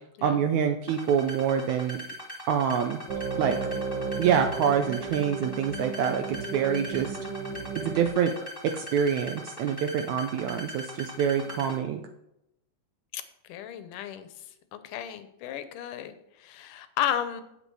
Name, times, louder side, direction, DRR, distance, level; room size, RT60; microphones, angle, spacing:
voice 1, 0.2-2.0 2.5-3.0 3.4-3.6 4.2-7.2 7.8-8.3 8.6-12.0, right 8 dB, 75° right, 5 dB, 1.9 m, -26 dB
sound 1, 0.9-11.8, equal, 10° left, 1.9 m, -41 dB
sound 2, 3.1-8.1, right 4 dB, 55° right, 1.3 m, -34 dB
voice 2, 13.5-14.3 14.7-17.4, left 10 dB, 80° left, 11 dB, 2.4 m, -33 dB
9.0 x 8.1 x 4.7 m, 0.84 s
omnidirectional pair, 3.7 m